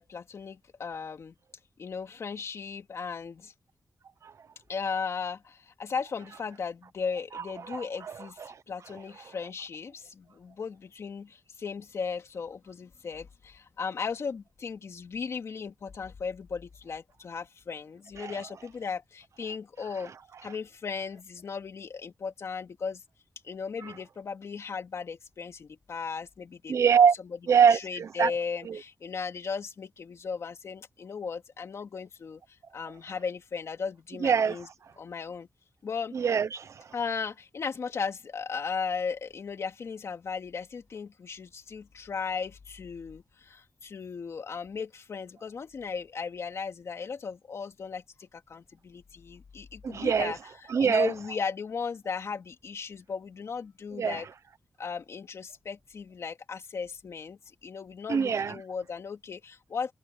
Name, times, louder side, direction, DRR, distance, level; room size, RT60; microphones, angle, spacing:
voice 1, 0.0-1.3 1.8-3.5 4.7-20.1 20.4-23.0 23.4-26.8 27.7-34.7 35.0-35.5 35.8-36.1 36.9-50.4 50.8-54.3 54.8-59.9, left 5 dB, 60° left, 2.6 m, -36 dB
voice 2, 7.3-8.6 18.2-18.3 26.7-27.1 27.5-28.3 28.6-28.8 34.2-34.6 36.1-36.9 49.8-50.3 50.7-51.1 54.0-54.2 58.1-58.6, right 7 dB, 65° right, 1.0 m, -24 dB
wide cardioid pair, 155°, 5 cm